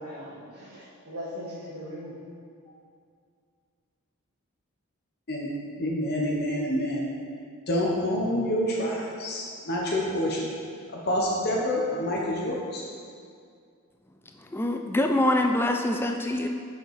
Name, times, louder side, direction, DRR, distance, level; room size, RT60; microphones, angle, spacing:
voice 1, 0.0-2.2, equal, 80° right, -10 dB, 1.6 m, -39 dB
voice 2, 5.8-7.1 7.7-10.5 11.1-12.8, left 1 dB, 45° left, -3 dB, 0.9 m, -27 dB
voice 3, 14.4-16.5, left 1 dB, 10° left, 4 dB, 0.3 m, -25 dB
6.6 x 5.1 x 4.8 m, 2.2 s
head